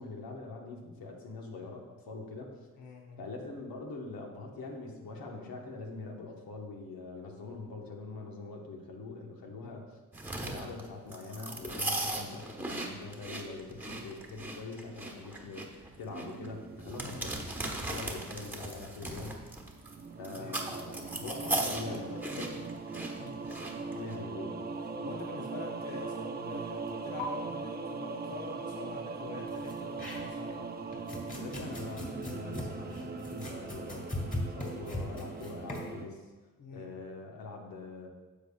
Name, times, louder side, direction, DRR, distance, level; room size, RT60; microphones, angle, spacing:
voice 1, 0.0-2.5 3.2-10.0 10.4-19.4 20.2-22.1 22.4-22.5 23.9-24.6 31.3-36.2 36.7-38.1, left 3 dB, 75° left, 1 dB, 1.3 m, -43 dB
voice 2, 2.8-3.2 9.6-9.8 17.0-17.4 20.4-20.8 21.8-22.5 23.2-23.4 25.0-30.7 36.6-36.9, left 4 dB, 55° left, 0 dB, 0.9 m, -45 dB
sound 1, 10.1-24.1, right 2 dB, 5° right, 1.2 m, -38 dB
sound 2, 16.1-19.1 19.6-36.1, right 4 dB, 25° right, 0.5 m, -41 dB
sound 3, 26.9-27.0 27.2-27.3 29.5-30.5 30.9-35.9, left 1 dB, 20° left, 2.2 m, -39 dB
10.0 x 6.8 x 2.4 m, 1.3 s
cardioid pair, 80°, 36 cm